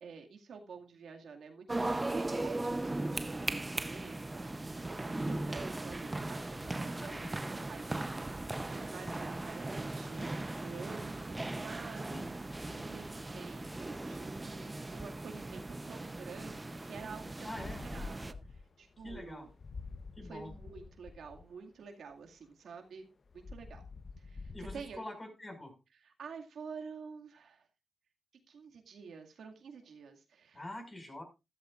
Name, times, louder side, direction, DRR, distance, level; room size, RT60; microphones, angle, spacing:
voice 1, 0.0-4.5 4.9-18.4 18.8-19.5 20.2-23.1 23.3-23.8 24.2-25.0 25.9-27.7 28.5-30.7, right 5 dB, 80° right, 3 dB, 2.1 m, -49 dB
sound 1, 1.7-18.3, right 2 dB, 20° right, 0.7 m, -38 dB
voice 2, 7.0-7.3 12.0-12.3 17.4-17.8 19.0-19.5 20.2-20.5 24.5-25.7 30.5-31.2, left 1 dB, 25° left, 4 dB, 5.5 m, -45 dB
sound 2, 17.6-21.5 23.3-25.0, left 4 dB, 45° left, 0.9 m, -47 dB
13.5 x 13.0 x 2.5 m, 0.26 s
cardioid pair, 95°, 0 cm